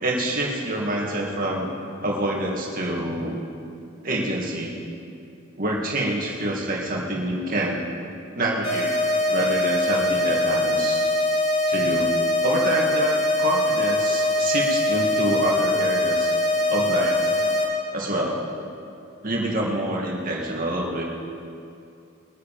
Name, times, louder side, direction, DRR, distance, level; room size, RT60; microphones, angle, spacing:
voice 1, 0.0-1.7 2.0-3.4 4.0-4.7 5.6-7.8 8.3-9.0 9.3-11.1 11.7-12.1 12.4-16.3 16.7-17.3 17.9-18.5 19.2-21.0, right 1 dB, 45° right, -2 dB, 2.2 m, -26 dB
sound 1, 8.6-17.6, left 1 dB, 50° left, 3.7 m, -22 dB
22.0 x 8.5 x 5.1 m, 2.5 s
head